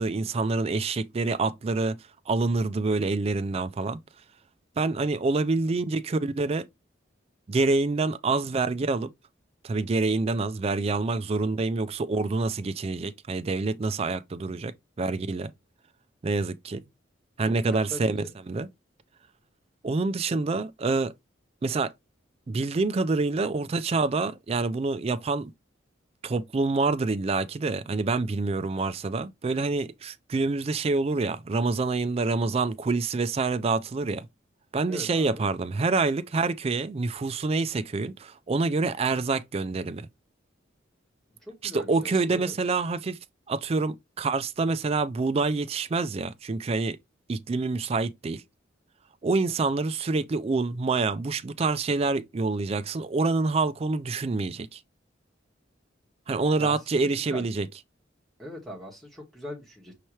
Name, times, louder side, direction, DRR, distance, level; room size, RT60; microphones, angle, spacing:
voice 1, 0.0-2.0 2.3-4.0 4.8-6.6 7.5-9.1 9.6-15.5 16.2-16.8 17.4-18.7 19.8-21.1 21.6-21.9 22.5-25.5 26.2-34.3 34.7-40.1 41.6-43.2 43.5-47.0 47.3-48.4 49.2-54.8 56.3-57.7, right 3 dB, 30° right, 0.3 m, -27 dB
voice 2, 17.6-18.3 34.9-35.4 41.4-42.5 56.6-57.5 58.4-59.9, left 1 dB, ahead, 1.4 m, -40 dB
5.5 x 2.9 x 3.0 m
head